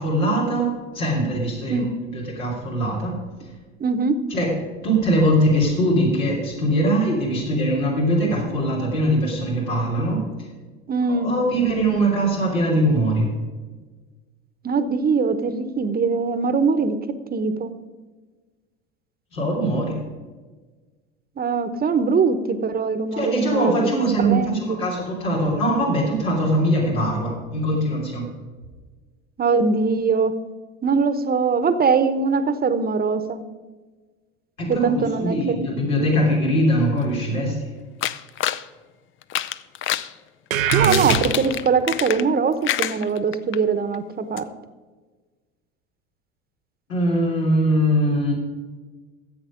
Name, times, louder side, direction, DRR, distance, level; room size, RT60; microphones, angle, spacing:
voice 1, 0.0-1.8 2.1-3.1 4.3-4.5 4.8-10.5 11.1-13.3 19.3-20.0 23.1-28.3 34.6-37.7 46.9-48.3, right 1 dB, 85° left, -4 dB, 3.4 m, -21 dB
voice 2, 3.8-4.2 10.9-11.3 14.6-17.0 17.3-17.7 21.4-23.7 24.2-24.8 29.4-30.3 30.8-33.4 34.7-35.6 40.7-44.5, right 5 dB, 25° right, 11 dB, 1.0 m, -22 dB
sound 1, 38.0-38.7 39.2-40.1 40.5-42.4 42.6-43.6 43.9-44.0 44.4-44.5, left 12 dB, 30° left, 0.5 m, -26 dB
sound 2, 40.5-41.7, right 9 dB, 85° right, 0.8 m, -22 dB
14.5 x 7.9 x 5.1 m, 1.3 s
hypercardioid pair, 75°, 39 cm